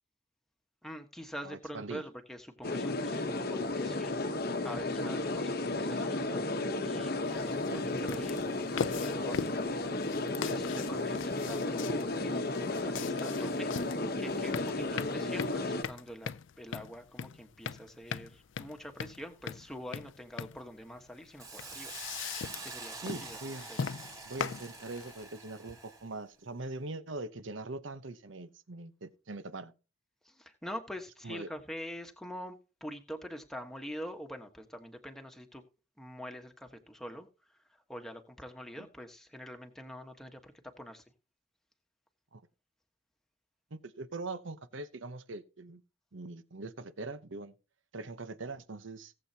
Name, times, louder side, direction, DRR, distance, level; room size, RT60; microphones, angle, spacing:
voice 1, 0.8-4.2 4.6-6.4 6.8-16.3 16.6-23.8 30.2-35.6 36.0-41.0, equal, ahead, 1.3 m, -45 dB
voice 2, 1.4-2.0 7.6-7.9 11.5-11.6 23.0-23.7 24.2-29.7 31.2-31.5 38.8-38.9 42.3-42.4 43.7-45.8 46.1-47.5 47.9-49.1, right 2 dB, 70° right, 0.9 m, -42 dB
sound 1, 2.6-15.8, left 2 dB, 50° left, 1.0 m, -33 dB
sound 2, 7.2-25.3, left 6 dB, 70° left, 0.5 m, -40 dB
Hiss, 21.4-26.1, right 3 dB, 15° right, 2.8 m, -46 dB
18.0 x 7.8 x 2.8 m
head